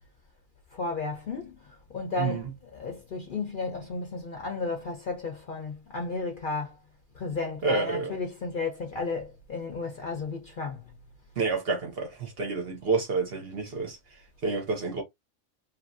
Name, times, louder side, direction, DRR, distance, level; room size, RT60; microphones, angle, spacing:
voice 1, 0.7-6.8 7.1-10.8, left 3 dB, 50° left, 0.6 m, -33 dB
voice 2, 2.2-2.5 7.6-8.2 11.4-15.0, right 4 dB, 55° right, 0.8 m, -29 dB
2.8 x 2.6 x 2.5 m
omnidirectional pair, 1.4 m